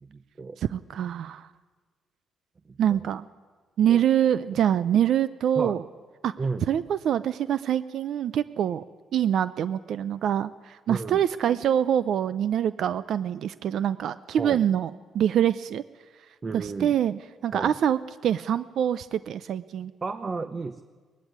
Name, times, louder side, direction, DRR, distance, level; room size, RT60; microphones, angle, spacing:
voice 1, 0.0-0.6 2.7-3.0 3.9-4.0 4.5-4.6 5.6-5.8 6.4-6.6 10.9-11.2 14.4-14.6 16.4-16.9 17.5-17.7 20.0-20.8, right 4 dB, 35° right, 11 dB, 0.8 m, -33 dB
voice 2, 0.6-1.5 2.8-3.3 3.8-5.8 6.2-6.3 6.7-8.8 9.1-15.8 16.5-19.9, right 10 dB, 70° right, 15 dB, 0.5 m, -25 dB
19.0 x 15.5 x 9.4 m, 1.4 s
cardioid pair, 90°, 0 cm